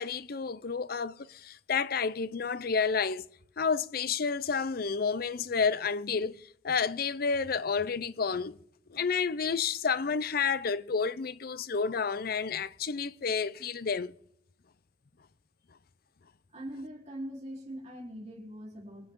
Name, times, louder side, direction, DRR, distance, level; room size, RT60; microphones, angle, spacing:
voice 1, 0.0-3.2 3.6-6.4 6.6-8.6 8.9-14.1, left 5 dB, 50° left, 0.6 m, -30 dB
voice 2, 16.5-19.1, equal, 35° right, 3.8 m, -42 dB
24.5 x 8.8 x 3.7 m
head